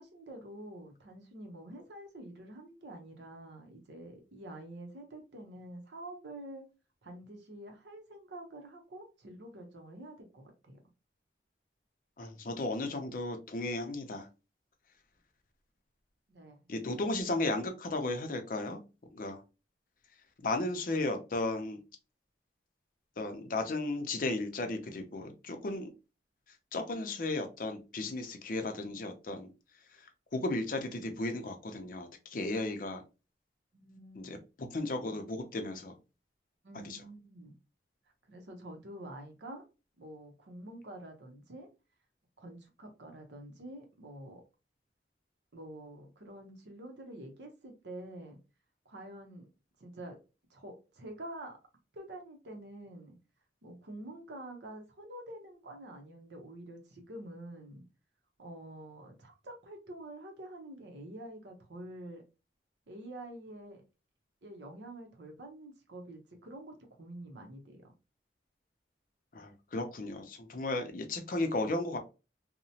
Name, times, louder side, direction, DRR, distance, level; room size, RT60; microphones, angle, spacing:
voice 1, 0.0-6.6 7.0-10.8 16.3-16.6 33.7-34.3 36.6-37.5 38.3-39.6 40.0-41.7 42.4-44.4 45.5-48.4 48.9-49.5 49.8-50.2 50.5-51.6 51.9-53.1 53.6-57.8 58.4-62.2 62.9-63.8 64.4-67.9, right 1 dB, 75° right, 3 dB, 0.8 m, -47 dB
voice 2, 12.2-14.3 16.7-18.8 19.1-19.4 20.4-21.8 23.2-25.9 26.7-29.5 30.3-33.0 34.2-34.4 34.7-35.9 36.7-37.0 69.3-72.0, left 2 dB, 50° left, 6 dB, 0.5 m, -35 dB
2.9 x 2.1 x 2.7 m, 0.30 s
head